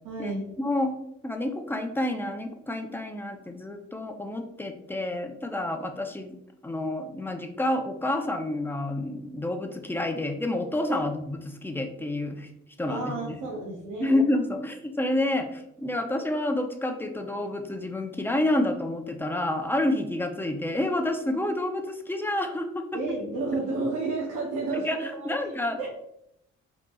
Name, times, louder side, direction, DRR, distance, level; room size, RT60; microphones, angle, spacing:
voice 1, 0.0-0.5 10.9-11.0 12.9-14.1 22.9-25.9, right 3 dB, 85° right, -2 dB, 0.8 m, -32 dB
voice 2, 0.6-0.9 1.2-6.4 6.6-12.5 12.8-13.4 14.0-23.0 24.7-25.8, left 1 dB, 5° left, 5 dB, 0.5 m, -29 dB
5.0 x 2.9 x 2.3 m, 0.77 s
cardioid pair, 90°, 30 cm